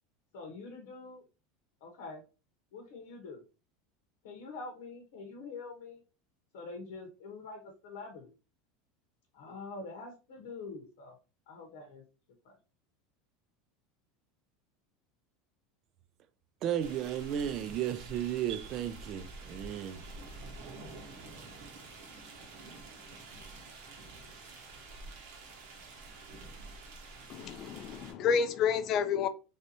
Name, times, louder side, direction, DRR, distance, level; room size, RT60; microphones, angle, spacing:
voice 1, 0.3-1.2 1.8-2.2 2.7-3.4 4.2-6.0 6.5-8.3 9.3-11.1 11.5-12.1 12.4-12.6, left 3 dB, 80° left, 0.9 m, -45 dB
voice 2, 16.6-20.0, right 10 dB, 45° right, 0.4 m, -34 dB
sound 1, 16.8-28.1, right 3 dB, 70° right, 1.0 m, -48 dB
voice 3, 27.3-29.3, left 7 dB, 45° left, 0.3 m, -29 dB
3.3 x 2.7 x 2.7 m
supercardioid pair, 130°, 0 cm